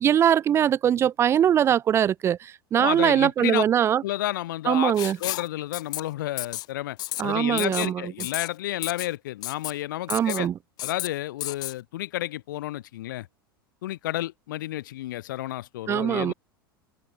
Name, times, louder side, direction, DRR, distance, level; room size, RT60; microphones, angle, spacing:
voice 1, 0.0-4.0 4.7-5.2 7.2-8.0 10.1-10.5 15.9-16.3, right 9 dB, 20° right, 0.4 m, -22 dB
voice 2, 2.8-3.6 4.0-4.9 5.2-10.5 10.8-13.3 13.8-16.3, left 15 dB, 60° left, 1.9 m, -31 dB
Writing, 5.0-5.5 5.7-6.0 6.4-6.7 7.0-7.2 7.6-7.9 8.2-8.5 8.8-9.1 9.4-9.7 10.1-10.4 10.8-11.1 11.4-11.7, left 16 dB, 35° left, 0.7 m, -32 dB
figure-of-eight pair, 85°, 12 cm